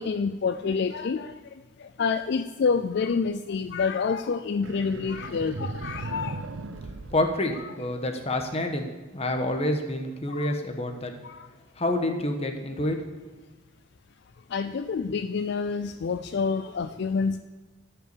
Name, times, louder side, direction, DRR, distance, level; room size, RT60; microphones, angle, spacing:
voice 1, 0.0-1.3 2.0-6.4 10.3-10.5 11.2-11.4 14.5-17.4, left 5 dB, 60° left, 8 dB, 0.4 m, -27 dB
sound 1, 4.6-8.1, right 3 dB, 85° right, 0.7 m, -37 dB
voice 2, 7.1-8.9 9.1-11.1 11.8-13.0, left 1 dB, 35° left, 4 dB, 1.2 m, -28 dB
13.5 x 5.8 x 6.8 m, 1.2 s
head